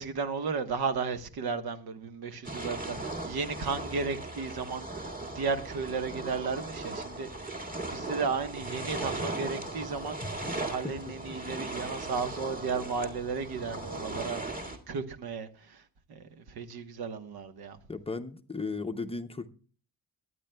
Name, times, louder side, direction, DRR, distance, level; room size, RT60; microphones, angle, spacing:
voice 1, 0.0-10.2 10.6-15.8 16.1-17.8, right 5 dB, 85° right, 1.2 m, -34 dB
sound 1, 2.4-14.8, right 2 dB, 25° right, 2.0 m, -38 dB
voice 2, 17.9-19.5, left 3 dB, 15° left, 0.5 m, -35 dB
22.5 x 9.5 x 2.2 m
wide cardioid pair, 170°, 37 cm